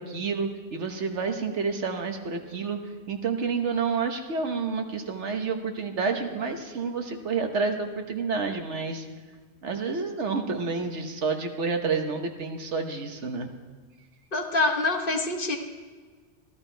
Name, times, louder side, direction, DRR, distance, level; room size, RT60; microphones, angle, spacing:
voice 1, 0.0-9.1 9.6-13.5, right 4 dB, 70° right, 5 dB, 1.4 m, -29 dB
voice 2, 14.3-15.6, left 3 dB, 50° left, 2 dB, 1.2 m, -25 dB
14.5 x 12.5 x 4.5 m, 1.5 s
omnidirectional pair, 1.2 m